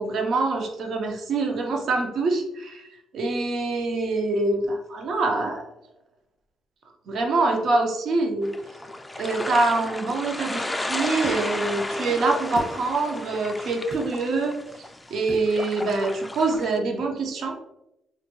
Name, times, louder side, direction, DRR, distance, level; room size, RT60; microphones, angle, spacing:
voice 1, 0.0-5.6 7.1-8.5 9.2-17.6, right 3 dB, 65° right, 2 dB, 0.6 m, -25 dB
sound 1, 8.4-16.8, left 1 dB, 10° left, 0.3 m, -33 dB
sound 2, 11.2-11.4 12.6-12.8 13.9-14.0 15.3-15.5, right 2 dB, 50° right, 1.3 m, -34 dB
3.9 x 2.2 x 2.9 m, 0.85 s
cardioid pair, 90°, 0 cm